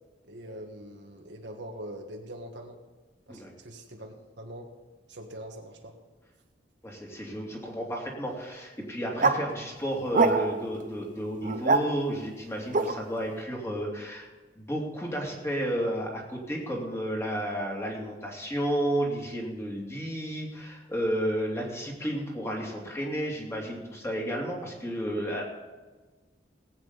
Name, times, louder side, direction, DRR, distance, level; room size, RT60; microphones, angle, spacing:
voice 1, 0.3-2.8 3.3-4.7 5.1-6.0, right 1 dB, 75° right, 2 dB, 1.5 m, -43 dB
voice 2, 6.8-14.3 14.6-25.4, equal, 15° left, -1 dB, 2.7 m, -32 dB
sound 1, 9.1-9.4 10.1-10.7 11.4-11.8 12.7-12.9, right 3 dB, 45° right, 0.9 m, -23 dB
18.5 x 8.8 x 4.1 m, 1.3 s
head